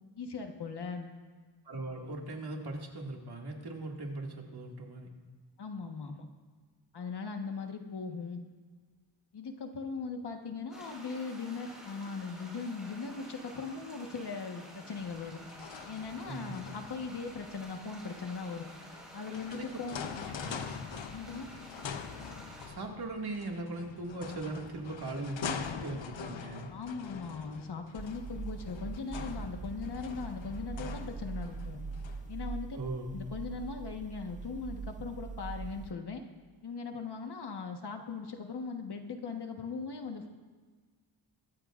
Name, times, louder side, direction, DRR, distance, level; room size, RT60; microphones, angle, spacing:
voice 1, 0.2-1.1 5.6-6.3 6.9-8.4 9.3-15.4 15.9-18.7 19.1-20.0 21.1-21.5 26.7-31.8 32.3-32.8 33.1-36.2 36.6-40.3, left 4 dB, 60° left, 4 dB, 1.4 m, -39 dB
voice 2, 1.6-5.1 16.2-16.6 19.3-19.7 20.4-20.7 22.7-26.7 32.7-33.2, right 2 dB, 55° right, 0 dB, 2.2 m, -39 dB
sound 1, 10.7-22.7, equal, ahead, 4.8 m, -51 dB
sound 2, 15.0-32.4, left 6 dB, 75° left, 0.9 m, -44 dB
sound 3, 28.0-35.9, right 4 dB, 20° right, 0.3 m, -42 dB
22.0 x 14.5 x 2.5 m, 1.5 s
wide cardioid pair, 150°, 45 cm